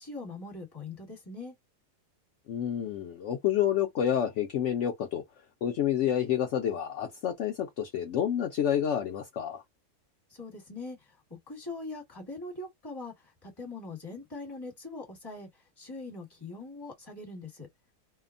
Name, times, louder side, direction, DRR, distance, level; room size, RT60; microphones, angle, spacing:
voice 1, 0.0-1.5 10.3-11.0 11.5-13.1 13.4-15.5 15.8-17.7, left 3 dB, 15° left, 1.1 m, -41 dB
voice 2, 2.5-5.2 5.6-9.6, left 10 dB, 75° left, 0.6 m, -29 dB
2.7 x 2.1 x 2.5 m
omnidirectional pair, 1.7 m